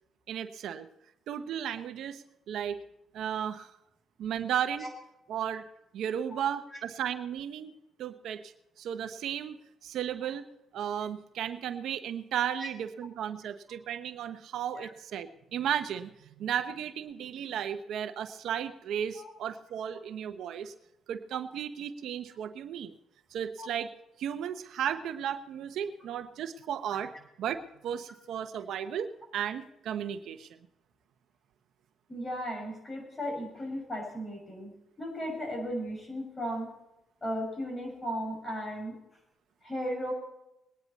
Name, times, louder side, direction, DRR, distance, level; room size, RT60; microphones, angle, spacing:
voice 1, 0.3-0.9 1.3-2.8 3.1-3.7 4.2-4.9 5.3-5.6 5.9-7.7 8.0-9.6 9.8-10.4 10.7-20.7 21.1-22.9 23.3-23.9 24.2-27.1 27.4-30.6, right 9 dB, 75° right, 9 dB, 0.9 m, -34 dB
voice 2, 32.1-36.7 37.2-39.0 39.6-40.1, equal, 25° left, 2 dB, 6.2 m, -36 dB
21.0 x 9.9 x 4.1 m, 0.87 s
cardioid pair, 90°, 0 cm